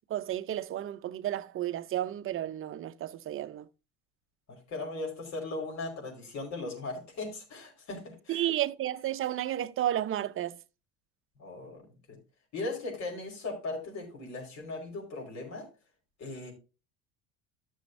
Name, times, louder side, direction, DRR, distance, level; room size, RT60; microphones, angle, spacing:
voice 1, 0.1-3.7 8.3-10.6, right 12 dB, 35° right, 0.7 m, -32 dB
voice 2, 4.5-8.5 11.4-11.8 12.1-12.2 12.5-15.7 16.2-16.5, left 2 dB, 50° left, 5.0 m, -38 dB
14.5 x 6.4 x 2.6 m
hypercardioid pair, 80°, 36 cm